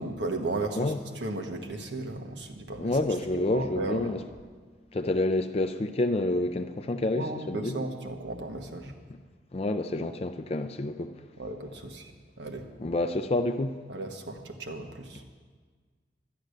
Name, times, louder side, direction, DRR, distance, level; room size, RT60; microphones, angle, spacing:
voice 1, 0.0-3.0 3.3-4.1 7.1-8.9 11.4-12.1 12.4-12.7 13.9-15.2, right 2 dB, 80° right, 4 dB, 1.3 m, -35 dB
voice 2, 2.8-4.2 4.9-7.8 9.5-11.1 12.8-13.8, left 2 dB, 35° left, 8 dB, 0.4 m, -28 dB
12.0 x 10.5 x 6.6 m, 1.5 s
head